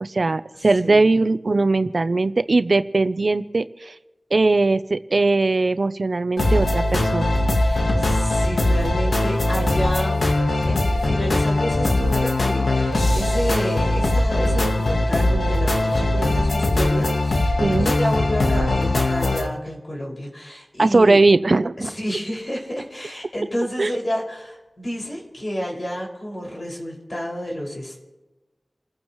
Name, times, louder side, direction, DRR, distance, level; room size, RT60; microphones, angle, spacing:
voice 1, 0.0-3.9 4.3-7.3 17.6-17.9 20.8-21.9 23.8-23.9, right 3 dB, 65° right, 12 dB, 0.6 m, -19 dB
voice 2, 0.5-1.1 7.5-10.3 10.6-21.2 21.8-28.0, equal, 50° left, -3 dB, 5.8 m, -30 dB
sound 1, 6.4-19.5, left 1 dB, 85° left, 1.4 m, -20 dB
29.0 x 15.0 x 3.1 m, 1.1 s
wide cardioid pair, 60°, 0 cm